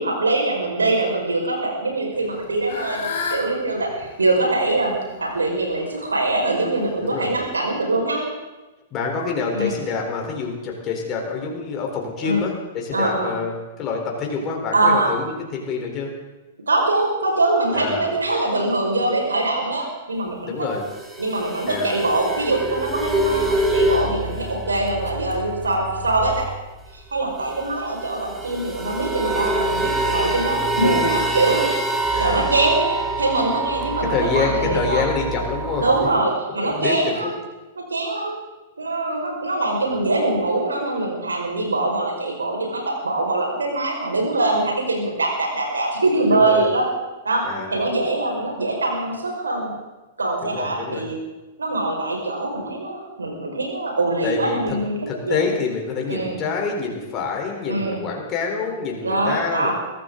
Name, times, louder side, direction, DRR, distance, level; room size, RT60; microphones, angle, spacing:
voice 1, 0.0-8.2 9.5-9.8 12.2-12.4 12.9-13.3 14.7-15.1 16.7-20.7 21.2-26.4 26.9-31.7 32.2-35.0 35.8-37.3 37.8-38.3 38.8-46.8 47.2-47.4 47.7-49.7 50.2-51.2 51.6-55.0 55.3-55.4 56.1-56.4 57.7-58.0 59.0-59.7, right 2 dB, 75° right, 0 dB, 5.2 m, -23 dB
Fowl / Bird, 2.1-7.4, left 5 dB, 55° left, 4.1 m, -34 dB
voice 2, 7.0-7.3 8.9-16.1 17.7-18.1 20.4-20.8 21.7-22.0 32.1-32.5 34.1-35.9 36.6-37.3 46.3-46.6 47.4-47.7 50.4-51.0 54.2-54.8 55.1-59.7, left 5 dB, 25° left, 0 dB, 4.0 m, -27 dB
sound 1, 20.8-26.6 26.9-27.0 27.2-36.1, right 2 dB, 10° right, 2.2 m, -26 dB
23.0 x 15.0 x 3.9 m, 1.1 s
figure-of-eight pair, 105°, 0 cm